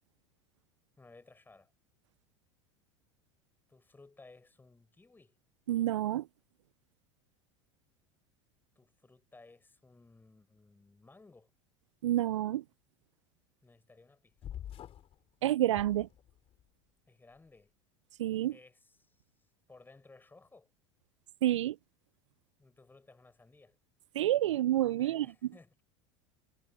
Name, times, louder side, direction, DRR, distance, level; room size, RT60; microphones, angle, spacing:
voice 1, 1.0-1.7 3.7-5.4 8.8-11.5 13.6-14.6 17.1-17.7 18.5-20.7 22.6-23.8 25.0-25.8, left 3 dB, 15° left, 6.8 m, -59 dB
voice 2, 5.7-6.2 12.0-12.6 15.4-16.1 18.2-18.5 21.4-21.8 24.2-25.3, right 13 dB, 75° right, 0.4 m, -28 dB
sound 1, 14.4-15.2 15.7-16.6, left 10 dB, 40° left, 4.1 m, -46 dB
figure-of-eight pair, 80°, 16 cm